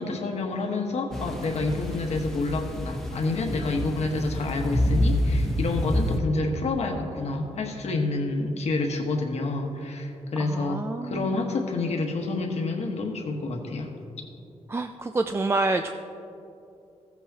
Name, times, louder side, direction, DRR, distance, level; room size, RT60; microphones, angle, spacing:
voice 1, 0.0-13.9, left 3 dB, 65° left, 2 dB, 1.3 m, -28 dB
sound 1, 1.1-6.2, left 1 dB, 5° left, 1.0 m, -27 dB
voice 2, 10.4-11.5 14.7-15.9, right 2 dB, 20° right, 7 dB, 0.4 m, -28 dB
15.0 x 8.2 x 2.9 m, 2.7 s
cardioid pair, 95°, 12 cm